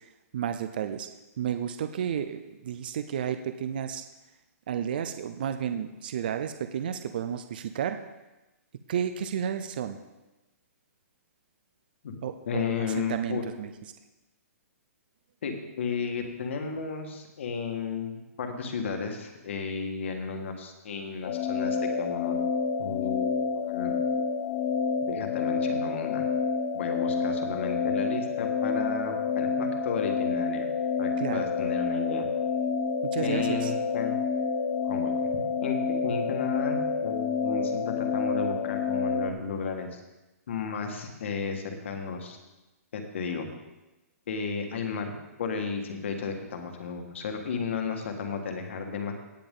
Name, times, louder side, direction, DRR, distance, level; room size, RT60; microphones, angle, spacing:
voice 1, 0.3-1.1 1.4-4.1 4.7-8.0 8.9-10.0 12.2-13.7 31.2-31.5 33.0-33.7, right 8 dB, 35° right, 9 dB, 0.4 m, -32 dB
voice 2, 12.5-13.4 15.4-22.4 22.8-23.9 25.0-26.2 26.7-30.7 31.0-32.3 33.2-34.2 34.8-35.1 35.6-35.8 36.0-40.0 40.5-42.4 42.9-43.5 44.3-45.1 45.4-49.1, left 5 dB, 50° left, 4 dB, 1.7 m, -33 dB
sound 1, 21.2-39.3, left 5 dB, 25° left, 0.5 m, -28 dB
17.5 x 6.9 x 3.8 m, 1.0 s
hypercardioid pair, 180°, 9 cm